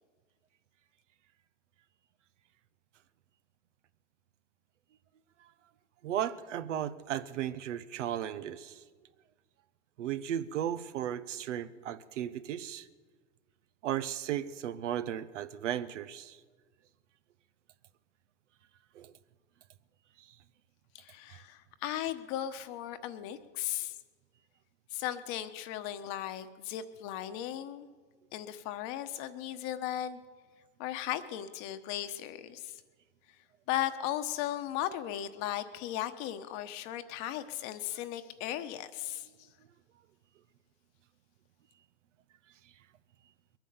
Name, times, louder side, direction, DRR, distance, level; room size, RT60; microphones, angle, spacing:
voice 1, 6.0-8.8 10.0-12.9 13.8-16.4 18.9-19.1, right 10 dB, 85° right, 14 dB, 0.8 m, -35 dB
voice 2, 20.9-23.9 24.9-27.9 28.3-30.2 30.8-32.7 33.7-39.3, left 12 dB, 55° left, 10 dB, 1.2 m, -36 dB
21.5 x 9.2 x 6.8 m, 1.5 s
hypercardioid pair, 105°, 36 cm